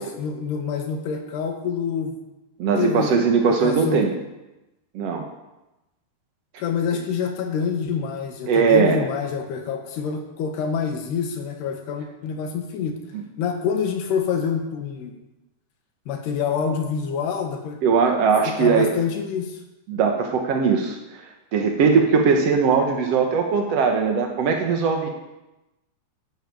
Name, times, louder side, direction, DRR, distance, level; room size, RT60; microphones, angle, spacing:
voice 1, 0.0-2.2 2.8-4.1 6.6-13.0 13.4-15.1 16.1-17.8 18.5-19.6, left 6 dB, 70° left, 4 dB, 3.7 m, -27 dB
voice 2, 2.6-4.1 4.9-5.3 8.5-9.0 17.8-18.9 19.9-21.3 21.5-25.1, right 5 dB, 75° right, 3 dB, 1.5 m, -20 dB
12.0 x 10.0 x 8.6 m, 0.98 s
omnidirectional pair, 4.9 m